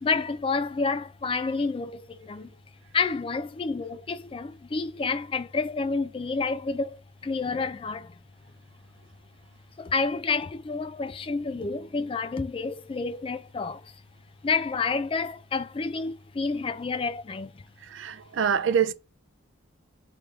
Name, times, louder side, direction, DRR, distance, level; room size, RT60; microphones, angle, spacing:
voice 1, 0.0-2.5 2.9-8.1 9.8-13.9 14.4-17.6, left 4 dB, 25° left, 0.3 m, -29 dB
voice 2, 17.9-18.9, right 7 dB, 65° right, 0.4 m, -25 dB
3.4 x 3.3 x 3.6 m
head